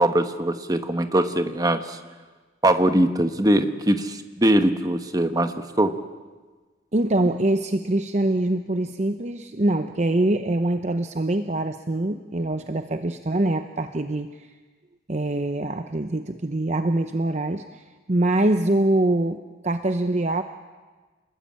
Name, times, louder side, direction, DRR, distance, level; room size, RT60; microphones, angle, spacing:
voice 1, 0.0-2.0 2.6-6.0, right 1 dB, 20° right, 8 dB, 1.3 m, -21 dB
voice 2, 6.9-14.5 15.1-19.4 19.6-20.4, right 1 dB, 40° right, 8 dB, 0.8 m, -24 dB
28.5 x 20.5 x 8.8 m, 1.4 s
head